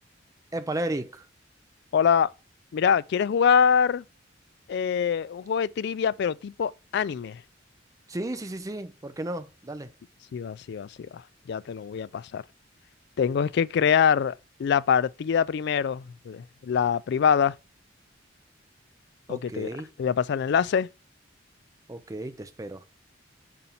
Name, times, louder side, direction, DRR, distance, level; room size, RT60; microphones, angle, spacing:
voice 1, 0.5-1.3 8.1-9.9 19.3-19.9 21.9-22.9, right 1 dB, 20° right, 0.5 m, -34 dB
voice 2, 1.9-2.3 2.7-4.0 4.7-7.4 10.3-11.2 11.5-12.4 13.2-17.5 19.3-19.7 20.0-20.9, left 7 dB, 60° left, 0.3 m, -24 dB
5.3 x 4.3 x 5.5 m
head